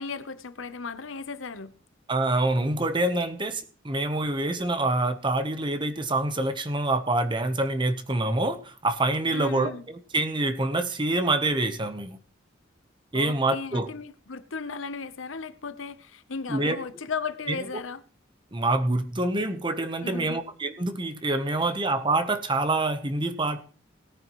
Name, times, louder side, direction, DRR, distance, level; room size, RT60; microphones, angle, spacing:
voice 1, 0.0-1.7 9.3-9.9 13.1-18.0 20.0-20.4, left 4 dB, 85° left, 13 dB, 0.9 m, -35 dB
voice 2, 2.1-9.7 10.1-12.2 13.1-13.9 16.5-16.8 17.5-17.6 18.5-23.6, right 2 dB, 25° right, 9 dB, 1.0 m, -26 dB
18.0 x 9.7 x 3.1 m, 0.40 s
head